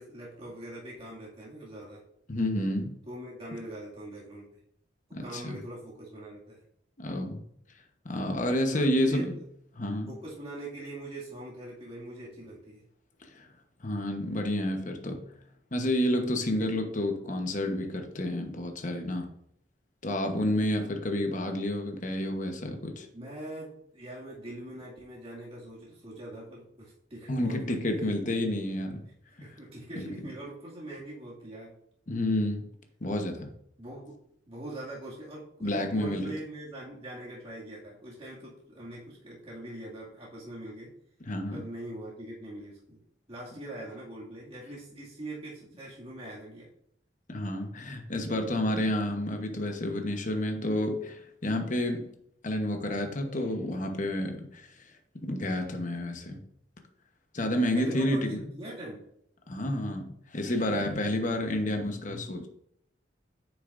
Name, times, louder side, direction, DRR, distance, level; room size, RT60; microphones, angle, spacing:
voice 1, 0.0-2.0 3.1-4.6 5.2-6.6 8.7-9.4 10.1-12.9 20.8-20.9 23.1-28.1 29.4-31.7 33.8-34.2 34.5-40.9 41.5-43.0 43.3-46.7 57.7-59.1 61.3-61.4, right 1 dB, 35° right, -7 dB, 2.2 m, -42 dB
voice 2, 2.3-3.0 5.1-5.6 7.0-7.4 8.0-9.4 9.8-10.1 13.2-13.5 13.8-15.3 15.7-19.3 20.0-23.1 27.3-29.1 30.0-30.1 32.1-32.7 33.0-33.5 35.6-36.3 41.3-41.6 47.3-52.1 52.4-54.9 55.1-56.4 57.3-58.4 59.5-62.5, left 1 dB, 45° left, 4 dB, 1.1 m, -30 dB
9.5 x 7.0 x 2.6 m, 0.71 s
head